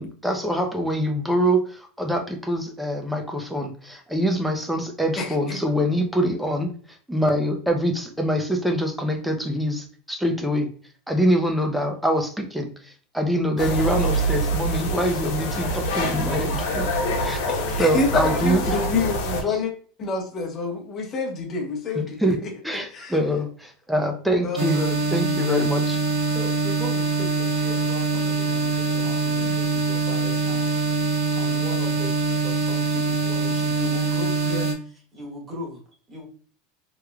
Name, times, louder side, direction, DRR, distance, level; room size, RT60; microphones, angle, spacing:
voice 1, 0.0-10.7 11.1-16.9 17.2-17.4 17.8-18.8 19.5-19.6 22.2-22.4 22.6-24.8 25.1-26.0, equal, ahead, 4 dB, 0.7 m, -24 dB
voice 2, 5.2-5.6 17.4-19.7 20.0-22.3 22.7-23.2 24.4-25.0, left 3 dB, 35° left, 2 dB, 1.0 m, -27 dB
sound 1, 13.6-19.4, right 1 dB, 75° left, 1.0 m, -25 dB
sound 2, 24.6-34.7, right 3 dB, 70° right, 0.8 m, -24 dB
voice 3, 26.3-35.8 36.1-36.3, equal, 20° right, -1 dB, 1.5 m, -38 dB
3.6 x 3.1 x 2.3 m, 0.42 s
supercardioid pair, 130°, 0 cm